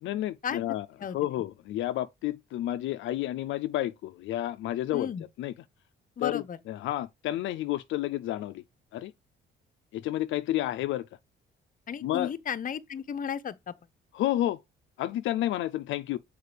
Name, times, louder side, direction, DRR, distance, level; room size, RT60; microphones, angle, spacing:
voice 1, 0.0-0.9 1.1-5.1 5.4-5.5 6.2-8.6 8.9-9.1 9.9-11.1 12.0-12.3 14.1-14.6 15.0-16.2, left 14 dB, 75° left, 0.4 m, -30 dB
voice 2, 4.9-5.2 6.2-6.6 11.9-13.7, left 8 dB, 45° left, 0.7 m, -33 dB
6.5 x 4.8 x 3.3 m
cardioid pair, 90°, 20 cm